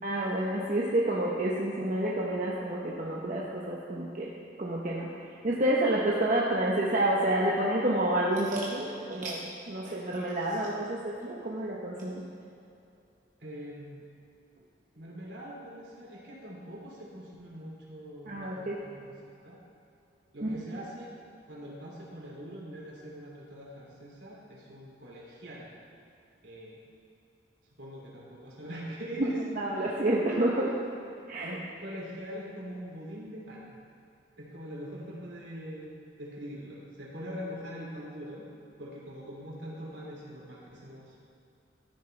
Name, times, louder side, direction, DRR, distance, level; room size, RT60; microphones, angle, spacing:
voice 1, 0.0-4.3 4.6-5.1 5.4-12.2 18.3-18.7 20.4-20.6 29.6-30.8 31.3-31.6, right 1 dB, 45° right, -4 dB, 1.0 m, -29 dB
voice 2, 13.4-14.0 14.9-19.2 19.4-19.6 20.3-21.1 21.5-25.7 26.4-26.8 27.8-29.4 29.8-29.9 31.4-33.8 34.4-38.4 38.8-41.3, equal, 70° right, -4 dB, 2.9 m, -43 dB
13.5 x 10.0 x 3.3 m, 2.6 s
head